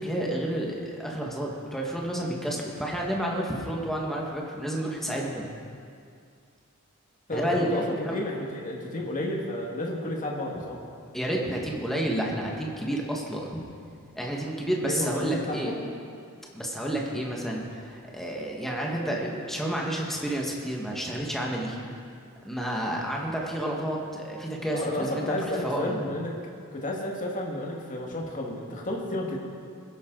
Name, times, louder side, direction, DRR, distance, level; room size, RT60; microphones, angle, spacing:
voice 1, 0.0-5.5 7.3-8.2 11.1-13.6 14.1-15.7 16.5-21.8 22.4-26.0, right 1 dB, ahead, -2 dB, 1.7 m, -30 dB
voice 2, 7.3-10.8 14.8-15.8 24.7-26.4 26.7-29.4, left 1 dB, 35° left, -1 dB, 1.9 m, -31 dB
20.5 x 10.5 x 4.0 m, 2.3 s
head